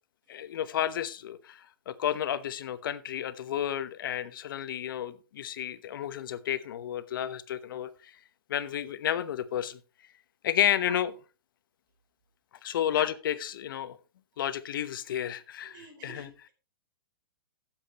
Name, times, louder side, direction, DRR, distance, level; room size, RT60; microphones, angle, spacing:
voice 1, 0.3-8.1 8.5-9.8 10.4-11.1 12.6-14.0 14.4-16.5, left 10 dB, 65° left, 1.0 m, -31 dB
voice 2, 15.6-16.5, right 3 dB, 60° right, 4.8 m, -46 dB
16.0 x 7.5 x 3.0 m
hypercardioid pair, 125°, 12 cm